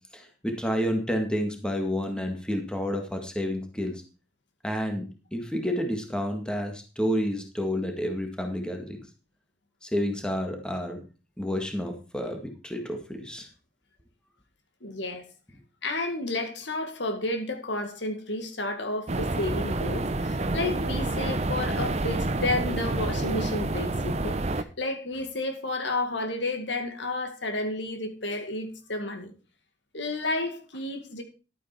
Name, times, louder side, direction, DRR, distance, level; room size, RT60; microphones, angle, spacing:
voice 1, 0.1-4.0 4.6-5.1 5.3-9.0 9.8-11.0 11.4-13.5, equal, 5° left, 1.9 m, -30 dB
voice 2, 14.8-15.2 15.8-29.3 29.9-31.2, left 2 dB, 75° left, 2.0 m, -31 dB
sound 1, 19.1-24.6, right 2 dB, 35° right, 0.7 m, -28 dB
12.0 x 9.1 x 4.4 m
head